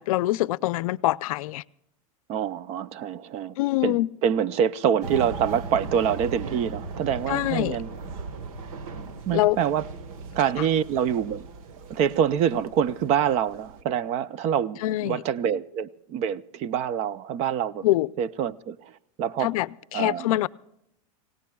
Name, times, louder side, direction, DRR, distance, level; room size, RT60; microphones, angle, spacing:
voice 1, 0.0-1.6 3.6-4.1 7.3-7.8 9.3-9.6 10.6-10.7 14.8-15.2 17.8-18.1 19.4-20.5, left 17 dB, 75° left, 0.5 m, -24 dB
voice 2, 2.3-3.6 3.8-7.9 9.3-9.8 10.4-11.5 11.9-17.8 18.2-18.8 19.2-19.5 19.9-20.3, right 8 dB, 35° right, 0.5 m, -26 dB
sound 1, 5.0-13.8, right 4 dB, 75° right, 1.3 m, -38 dB
27.0 x 17.5 x 2.3 m
supercardioid pair, 155°, 18 cm